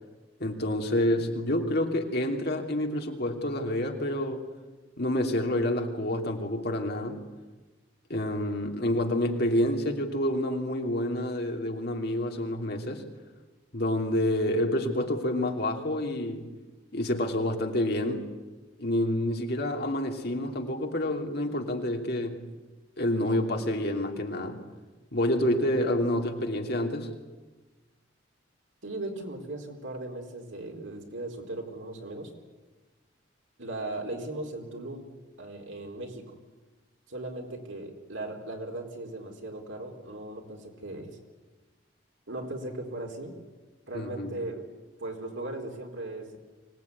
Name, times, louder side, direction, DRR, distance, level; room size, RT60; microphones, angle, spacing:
voice 1, 0.4-4.5 5.0-7.2 8.1-13.0 13.7-16.5 16.9-18.3 18.8-22.4 23.0-24.6 25.1-27.1 43.9-44.3, left 1 dB, 55° left, 3 dB, 2.9 m, -28 dB
voice 2, 28.8-32.3 33.6-35.1 35.4-36.4 37.1-41.2 42.3-43.3 43.9-44.7 45.0-46.4, right 2 dB, 75° right, 2 dB, 4.3 m, -38 dB
24.5 x 18.5 x 9.7 m, 1.2 s
head